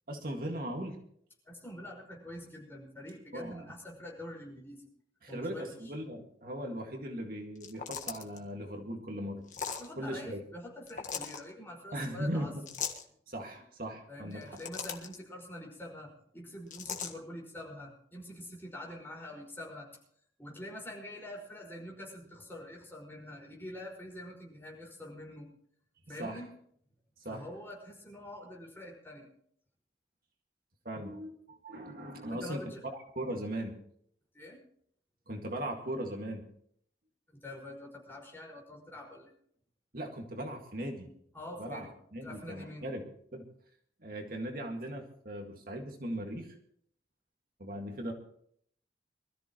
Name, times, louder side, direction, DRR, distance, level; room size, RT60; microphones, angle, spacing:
voice 1, 0.1-1.0 3.3-3.7 5.2-9.4 10.0-10.4 11.9-12.6 13.3-14.6 26.1-26.5 27.2-27.5 30.8-32.6 33.2-33.8 35.3-36.5 39.9-41.1 41.6-43.5 44.0-46.5 47.6-48.1, right 1 dB, 55° right, 3 dB, 2.0 m, -39 dB
voice 2, 1.4-4.8 5.3-5.9 9.7-12.5 14.1-19.9 20.4-25.5 26.1-26.5 27.3-29.3 32.3-32.8 34.3-34.6 37.3-39.3 41.3-41.9 42.2-42.9, left 1 dB, 15° left, -1 dB, 5.3 m, -45 dB
sound 1, 7.6-8.4 9.5-9.9 10.9-11.4 12.7-13.0 14.3-15.2 16.7-17.1, left 7 dB, 45° left, 1.6 m, -38 dB
24.0 x 14.0 x 3.1 m, 0.64 s
head